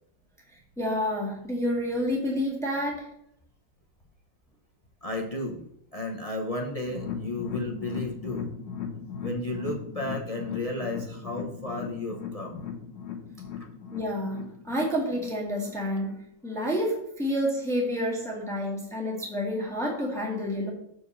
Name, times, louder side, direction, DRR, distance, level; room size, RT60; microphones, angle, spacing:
voice 1, 0.8-3.1 13.9-20.7, equal, ahead, -2 dB, 1.7 m, -29 dB
voice 2, 5.0-5.6 5.9-8.5 9.2-12.6, left 1 dB, 30° left, 2 dB, 0.6 m, -33 dB
sound 1, 6.9-16.1 16.5-16.6 17.0-17.1, left 7 dB, 70° left, 1.8 m, -37 dB
7.0 x 4.7 x 7.0 m, 0.72 s
omnidirectional pair, 2.0 m